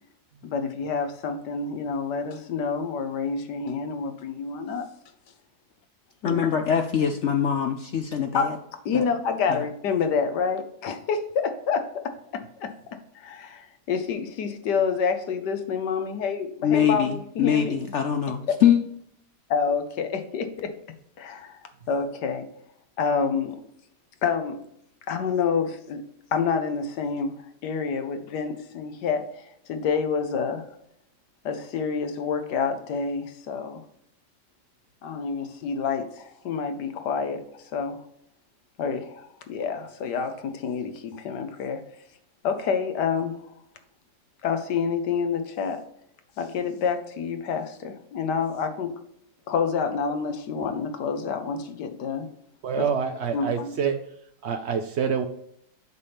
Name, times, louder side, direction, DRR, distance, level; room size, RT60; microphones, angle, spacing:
voice 1, 0.4-4.8 6.2-6.5 8.3-8.5 8.8-12.7 13.1-17.7 19.5-20.7 21.2-21.6 21.9-22.5 23.0-23.6 24.2-24.6 25.1-26.0 26.3-27.4 27.6-30.6 31.4-33.8 35.0-38.0 38.8-41.8 42.4-43.4 44.4-45.8 46.4-48.9 49.5-52.3 52.8-52.9 53.3-53.7, left 5 dB, 90° left, 1.5 m, -28 dB
voice 2, 6.2-8.6 8.9-9.0 9.5-9.6 16.6-18.8, left 8 dB, 70° left, 0.6 m, -23 dB
voice 3, 52.6-54.0 54.4-55.3, right 6 dB, 75° right, 0.6 m, -26 dB
8.2 x 5.6 x 3.4 m
omnidirectional pair, 1.7 m